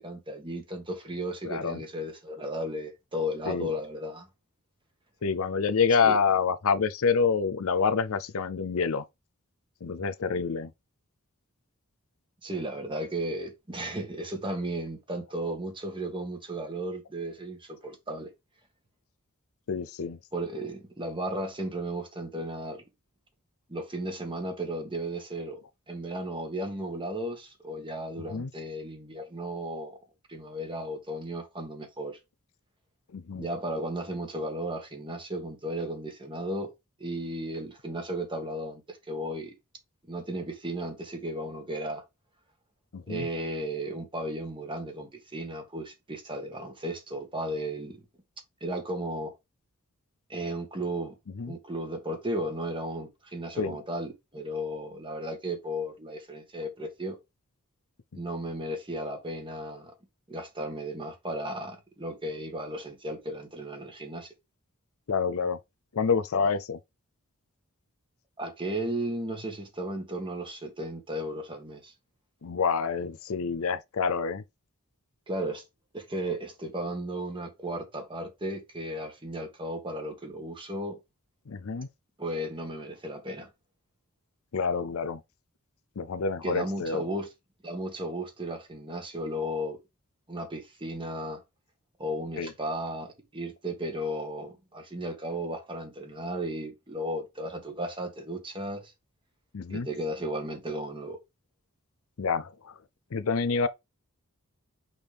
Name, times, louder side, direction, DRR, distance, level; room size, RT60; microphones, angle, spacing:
voice 1, 0.0-4.3 6.0-6.2 12.4-18.3 20.3-22.8 23.7-25.6 25.9-30.0 30.3-32.2 33.3-36.7 37.0-39.6 40.1-42.0 43.1-48.0 48.6-49.3 50.3-51.2 51.4-57.2 58.1-59.9 60.3-64.3 68.4-71.9 75.3-75.6 75.9-81.0 82.2-83.5 86.4-87.3 87.6-89.8 90.3-91.4 92.0-98.9 99.7-101.2, right 1 dB, 25° right, 1.8 m, -35 dB
voice 2, 1.4-1.8 3.5-3.7 5.2-9.1 9.8-10.7 19.7-20.2 28.2-28.5 33.1-33.5 42.9-43.3 51.3-51.5 53.6-53.8 65.1-65.6 65.9-66.8 72.4-74.4 81.5-81.9 84.5-85.2 86.0-87.0 92.4-92.5 99.5-99.9 102.2-102.7 103.1-103.7, left 5 dB, 70° left, 0.6 m, -27 dB
6.1 x 5.3 x 3.5 m
head